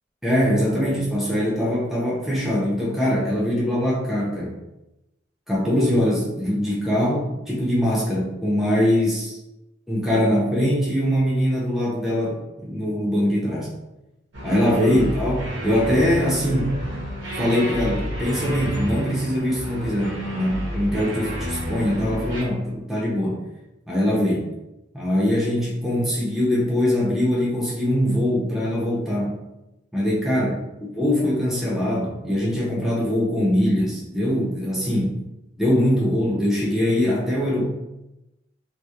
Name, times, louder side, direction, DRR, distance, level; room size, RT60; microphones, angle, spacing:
voice 1, 0.2-4.5 5.5-9.3 9.9-13.7 14.4-16.8 17.3-23.4 23.9-24.5 24.9-29.3 29.9-35.2 35.6-37.7, equal, ahead, -6 dB, 0.4 m, -22 dB
sound 1, 14.3-22.4, equal, 65° right, 0.7 m, -30 dB
2.8 x 2.0 x 2.2 m, 0.94 s
head